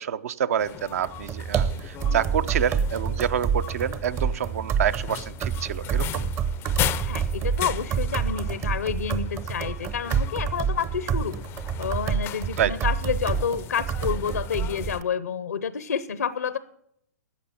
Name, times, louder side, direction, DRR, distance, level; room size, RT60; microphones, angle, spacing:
voice 1, 0.0-6.3 12.6-12.7, right 9 dB, 65° right, 14 dB, 0.7 m, -27 dB
sound 1, 0.6-15.0, left 14 dB, 25° left, 0.4 m, -37 dB
sound 2, 1.0-15.0, right 7 dB, 30° right, 0.8 m, -28 dB
voice 2, 7.0-11.4 11.8-16.6, left 7 dB, 85° left, 15 dB, 0.8 m, -29 dB
13.5 x 8.8 x 7.1 m, 0.71 s
hypercardioid pair, 125°, 9 cm